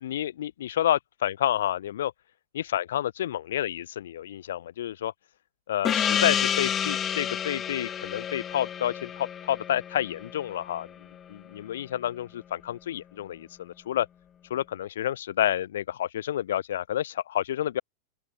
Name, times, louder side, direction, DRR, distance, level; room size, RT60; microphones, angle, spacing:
voice 1, 0.0-2.1 2.5-5.1 5.7-10.9 11.3-14.1 14.5-17.8, left 11 dB, 60° left, 6.6 m, -29 dB
Gong, 5.9-10.9, left 9 dB, 25° left, 2.5 m, -29 dB
open air
figure-of-eight pair, 90°, 0 cm